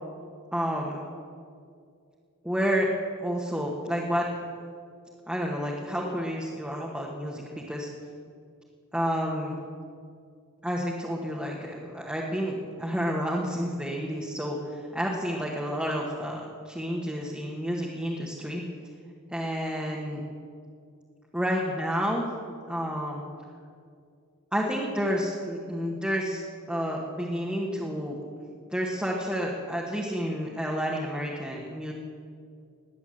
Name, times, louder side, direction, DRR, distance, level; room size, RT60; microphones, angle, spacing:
voice 1, 0.5-1.0 2.4-2.9 3.2-4.3 5.3-7.9 8.9-9.6 10.6-18.6 19.3-20.2 21.3-22.3 22.7-23.2 24.5-28.2 28.7-31.9, equal, 5° right, -3 dB, 1.3 m, -30 dB
17.5 x 10.0 x 7.7 m, 2.3 s
head